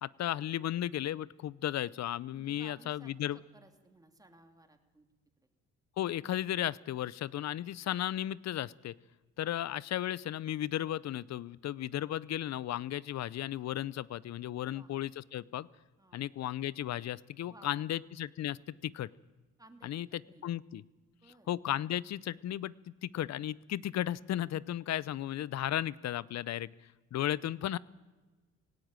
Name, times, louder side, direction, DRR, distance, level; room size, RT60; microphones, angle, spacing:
voice 1, 0.0-3.4 6.0-8.9 9.4-15.7 16.1-19.1 19.8-20.1 20.4-20.8 21.5-22.7 23.0-26.7 27.1-27.8, left 12 dB, 60° left, 21 dB, 0.6 m, -35 dB
voice 2, 2.3-5.1 5.4-5.5 14.7-14.9 16.0-16.3 17.5-18.0 19.6-20.5 21.1-21.5 27.4-27.5, right 2 dB, 10° right, 6 dB, 2.6 m, -59 dB
17.5 x 17.5 x 8.9 m, 1.2 s
cardioid pair, 90°, 30 cm